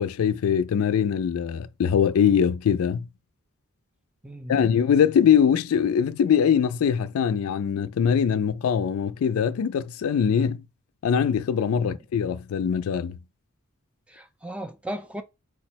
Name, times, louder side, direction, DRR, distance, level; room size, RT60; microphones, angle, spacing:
voice 1, 0.0-3.1 4.5-10.6 11.0-13.2, left 7 dB, 70° left, 0.3 m, -22 dB
voice 2, 4.2-4.6 11.8-12.0 14.1-15.2, right 1 dB, 5° right, 0.3 m, -36 dB
4.6 x 2.1 x 4.3 m
head